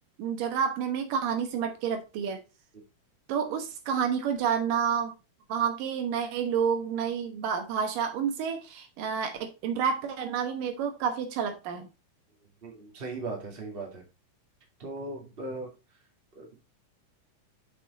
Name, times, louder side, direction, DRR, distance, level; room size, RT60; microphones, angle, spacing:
voice 1, 0.2-2.4 3.3-5.1 5.5-11.9, right 7 dB, 85° right, 2.9 m, -29 dB
voice 2, 12.6-14.0 14.8-15.7 16.3-16.6, right 2 dB, 20° right, 1.8 m, -38 dB
6.6 x 6.3 x 4.1 m
omnidirectional pair, 3.8 m